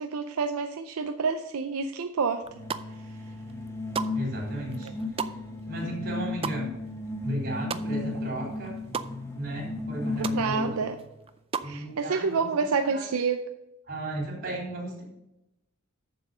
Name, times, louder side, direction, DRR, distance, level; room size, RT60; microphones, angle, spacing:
voice 1, 0.0-2.4 10.2-11.0 11.6-13.4, right 5 dB, 85° right, 6 dB, 0.5 m, -28 dB
sound 1, 2.4-3.1 3.5-8.3 8.5-9.1 9.5-9.6 9.8-10.4 10.8-11.8, right 6 dB, 25° right, 0.4 m, -36 dB
sound 2, 2.5-11.0, left 2 dB, 15° left, 1.2 m, -35 dB
voice 2, 4.1-4.9 5.2-5.3 5.7-6.7 7.2-8.8 9.3-10.8 11.6-13.1 13.9-15.0, right 1 dB, 50° right, -2 dB, 3.8 m, -35 dB
7.3 x 7.0 x 5.5 m, 0.90 s
head